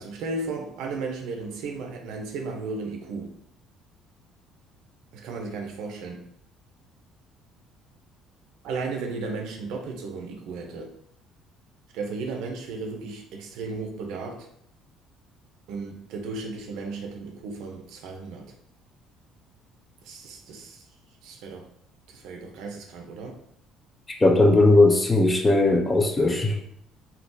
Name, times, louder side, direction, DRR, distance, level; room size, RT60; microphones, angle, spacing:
voice 1, 0.0-3.4 5.1-6.2 8.6-10.9 11.9-14.5 15.7-18.5 20.0-20.8 21.2-21.7 22.1-23.4, right 3 dB, 80° right, 3 dB, 0.6 m, -35 dB
voice 2, 24.2-26.6, left 2 dB, 15° left, 2 dB, 0.5 m, -18 dB
3.7 x 2.3 x 2.6 m, 0.68 s
cardioid pair, 115°, 0 cm